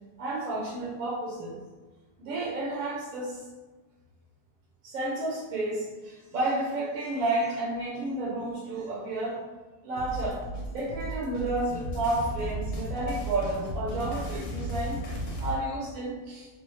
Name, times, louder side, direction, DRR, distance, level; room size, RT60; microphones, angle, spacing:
voice 1, 0.2-1.6 2.2-3.4 4.8-9.4 9.8-10.4 10.7-15.0 15.4-16.5, right 2 dB, 65° right, -5 dB, 1.0 m, -31 dB
sound 1, 10.0-15.6, right 1 dB, 60° left, 0.9 m, -35 dB
3.3 x 2.2 x 3.0 m, 1.3 s
omnidirectional pair, 1.7 m